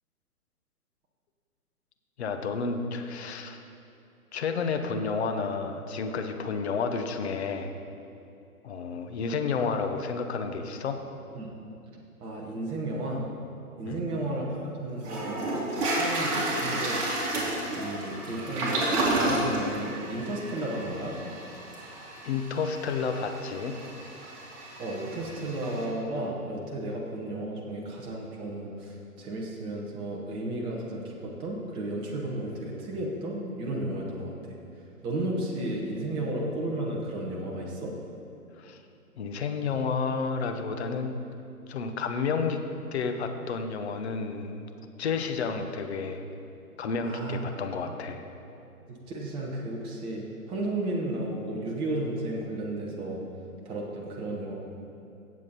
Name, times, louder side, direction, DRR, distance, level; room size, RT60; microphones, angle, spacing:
voice 1, 2.2-3.6 4.3-7.7 8.6-11.0 13.8-14.1 22.2-23.8 38.6-38.8 39.2-41.1 41.7-42.6 42.9-44.6 45.0-46.2 46.8-48.2, left 5 dB, 45° left, 6 dB, 1.0 m, -31 dB
voice 2, 12.2-13.2 13.8-17.5 17.8-21.1 24.8-34.3 35.0-37.9 47.0-47.4 48.9-53.2 53.6-54.5, right 1 dB, 10° right, -3 dB, 1.0 m, -33 dB
Toilet flush, 14.5-14.6 15.0-25.8, right 1 dB, 30° right, 2.8 m, -31 dB
17.0 x 7.5 x 4.1 m, 2.7 s
figure-of-eight pair, 130°, 45 cm